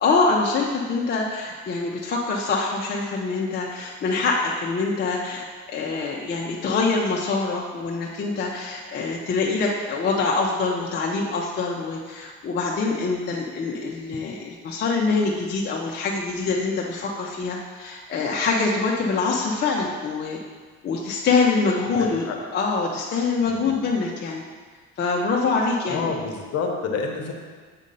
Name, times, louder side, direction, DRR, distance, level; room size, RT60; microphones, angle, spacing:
voice 1, 0.0-20.4 20.8-22.3 22.5-24.4 25.0-26.1, left 4 dB, 35° left, -2 dB, 0.6 m, -24 dB
voice 2, 21.9-22.4 23.4-23.7 25.9-27.3, left 5 dB, 50° left, 2 dB, 1.0 m, -29 dB
7.3 x 2.7 x 5.3 m, 1.5 s
cardioid pair, 110°, 31 cm